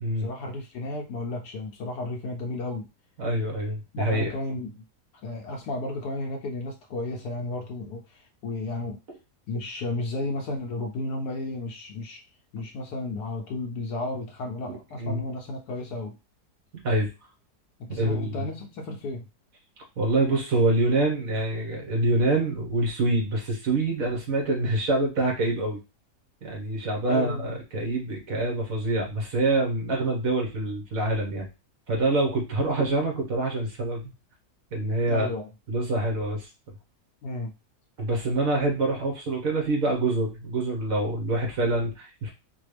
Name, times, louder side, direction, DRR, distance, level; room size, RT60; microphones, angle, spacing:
voice 1, 0.2-2.9 3.9-4.8 5.2-9.0 9.5-12.2 12.5-16.1 17.8-19.3 27.1-27.6 32.8-32.9 35.1-35.5 37.2-37.5, left 2 dB, 80° left, 1 dB, 1.2 m, -33 dB
voice 2, 3.2-4.3 15.0-15.2 16.8-17.1 17.9-18.3 20.0-25.8 26.4-31.5 31.9-34.1 34.7-35.3 35.7-36.5 38.0-42.3, right 2 dB, 60° right, 0 dB, 1.5 m, -26 dB
4.2 x 2.3 x 3.3 m, 0.27 s
omnidirectional pair, 1.7 m